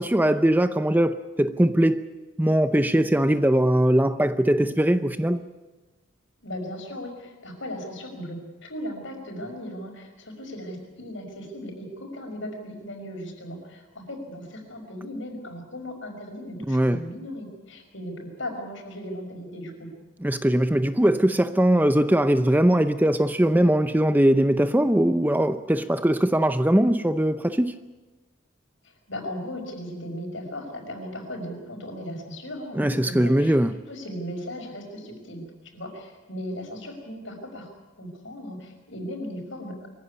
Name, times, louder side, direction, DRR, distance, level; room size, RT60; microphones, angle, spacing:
voice 1, 0.0-2.0 2.4-5.5 16.7-17.0 20.2-27.9 32.7-33.7, right 1 dB, 10° right, 0.6 m, -21 dB
voice 2, 6.4-19.9 28.8-33.6 33.9-35.4 35.7-37.7 38.0-39.9, equal, 75° left, 5.7 m, -37 dB
24.0 x 15.5 x 9.6 m
head